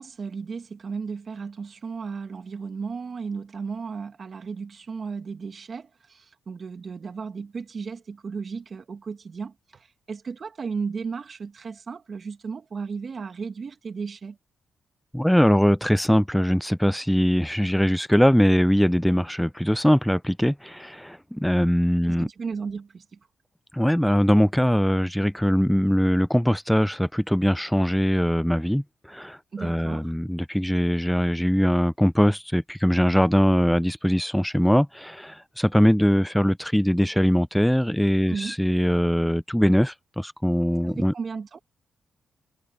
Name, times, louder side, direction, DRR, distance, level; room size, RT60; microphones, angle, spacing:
voice 1, 0.0-14.4 22.0-23.0 29.5-30.1 38.3-38.6 40.8-41.6, right 5 dB, 50° right, 2.1 m, -34 dB
voice 2, 15.1-22.3 23.7-41.1, equal, 5° left, 0.5 m, -21 dB
cardioid pair, 70°, 0 cm